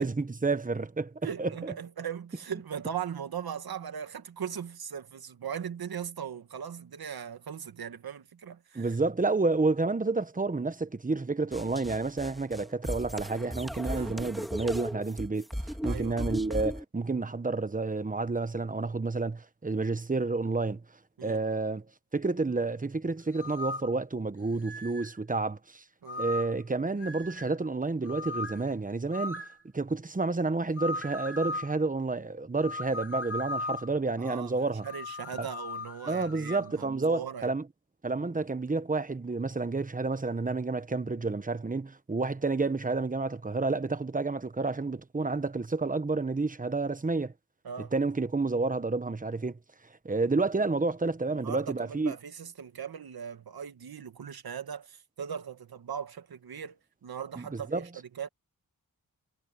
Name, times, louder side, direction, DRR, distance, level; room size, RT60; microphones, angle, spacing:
voice 1, 0.0-1.1 1.4-1.7 8.7-20.8 21.2-21.8 22.1-25.8 26.2-29.4 29.7-34.9 35.4-35.5 36.1-37.6 38.0-47.3 47.9-49.6 50.0-52.1 57.4-57.9, right 3 dB, 20° right, 1.1 m, -30 dB
voice 2, 1.2-8.9 13.9-14.1 15.8-16.3 21.2-21.4 26.0-26.2 34.2-37.5 47.6-47.9 51.3-58.3, right 8 dB, 80° right, 1.6 m, -39 dB
sound 1, 11.5-16.8, equal, ahead, 2.0 m, -36 dB
sound 2, 23.3-23.9 24.6-25.1 26.1-26.6 27.0-27.5 28.0-28.6 29.1-29.6 30.8-31.7 32.6-34.0 34.8-36.7, left 2 dB, 40° left, 2.5 m, -37 dB
wide cardioid pair, 90°, 36 cm